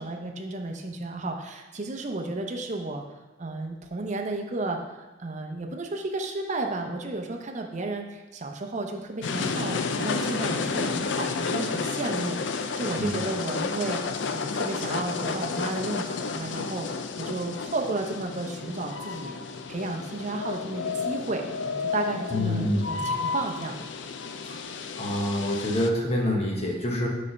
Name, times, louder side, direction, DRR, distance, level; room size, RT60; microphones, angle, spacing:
voice 1, 0.0-3.0 3.4-4.8 5.2-14.0 14.3-19.4 19.7-23.9, right 2 dB, 40° right, 3 dB, 0.6 m, -33 dB
sound 1, 9.2-25.9, left 4 dB, 70° left, 0.4 m, -31 dB
voice 2, 22.3-23.1 25.0-27.1, left 1 dB, 35° left, -1 dB, 1.0 m, -26 dB
5.3 x 4.2 x 5.3 m, 1.1 s
head